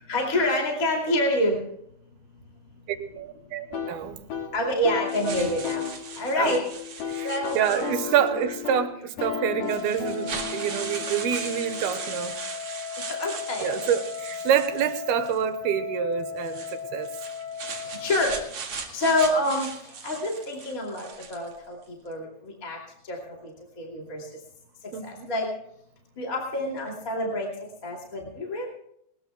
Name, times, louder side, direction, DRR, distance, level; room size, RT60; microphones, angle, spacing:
voice 1, 0.1-1.6 4.5-5.9 6.2-6.6 7.2-8.2 13.1-13.9 17.9-18.4 18.9-19.7 20.0-21.8 22.0-22.3 22.6-22.8 23.1-23.2 23.8-24.2 25.0-25.5 26.2-27.5 27.8-28.7, left 1 dB, 25° left, -1 dB, 2.5 m, -27 dB
voice 2, 2.9-4.2 6.4-6.6 7.1-7.3 7.5-12.4 13.6-17.1 24.9-25.3, right 9 dB, 80° right, 9 dB, 3.0 m, -27 dB
sound 1, 3.7-12.3, left 7 dB, 75° left, 3.8 m, -35 dB
sound 2, 5.1-8.3 9.1-9.2 9.7-15.4 16.4-21.6, right 5 dB, 45° right, 2.5 m, -38 dB
Wind instrument woodwind instrument, 9.2-18.5, left 7 dB, 15° right, 2.7 m, -37 dB
21.0 x 20.0 x 2.2 m, 0.73 s
omnidirectional pair, 4.5 m